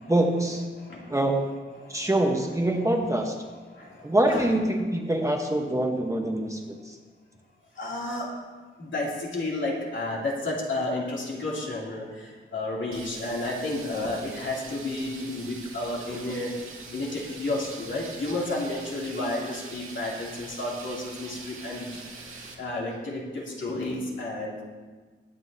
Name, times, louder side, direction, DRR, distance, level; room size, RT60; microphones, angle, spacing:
voice 1, 0.1-0.6 1.1-1.5 1.9-3.3 4.0-6.9, right 1 dB, 15° right, 2 dB, 1.1 m, -25 dB
voice 2, 0.8-1.1 1.8-2.1 3.7-4.5 7.8-8.3 8.8-16.5 16.9-22.0 22.3-24.6, left 2 dB, 65° left, -3 dB, 2.8 m, -32 dB
sound 1, 12.9-22.5, right 3 dB, 80° right, 2.0 m, -43 dB
22.0 x 9.2 x 2.8 m, 1.4 s
wide cardioid pair, 145°, 21 cm